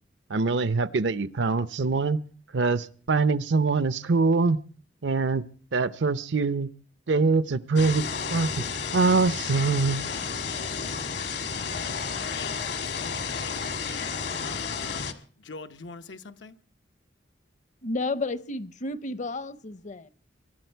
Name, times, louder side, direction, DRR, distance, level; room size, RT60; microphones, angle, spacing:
voice 1, 0.3-2.2 2.5-4.6 5.0-5.4 5.7-6.7 7.1-8.0 8.3-10.1, right 4 dB, 75° right, 0.7 m, -24 dB
sound 1, 7.8-15.1, left 5 dB, 65° left, 1.4 m, -32 dB
voice 2, 11.5-13.6 14.4-16.6, left 4 dB, 90° left, 1.0 m, -44 dB
voice 3, 17.8-20.1, left 2 dB, 40° left, 0.7 m, -32 dB
23.5 x 11.0 x 4.5 m
head